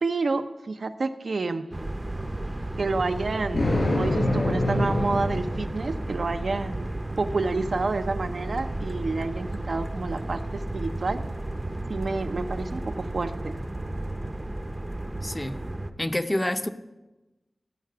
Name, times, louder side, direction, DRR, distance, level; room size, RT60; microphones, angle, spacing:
voice 1, 0.0-1.7 2.8-6.9 7.2-11.2 11.9-13.5, right 3 dB, 70° right, 9 dB, 0.6 m, -29 dB
sound 1, 1.7-15.9, right 1 dB, 25° right, 0.6 m, -33 dB
Thunder, 3.5-6.1, left 1 dB, 80° left, 4.4 m, -26 dB
voice 2, 15.2-15.6 16.0-16.7, left 1 dB, 20° left, 10 dB, 0.6 m, -27 dB
15.0 x 5.9 x 6.6 m, 1.1 s
wide cardioid pair, 90°, 0 cm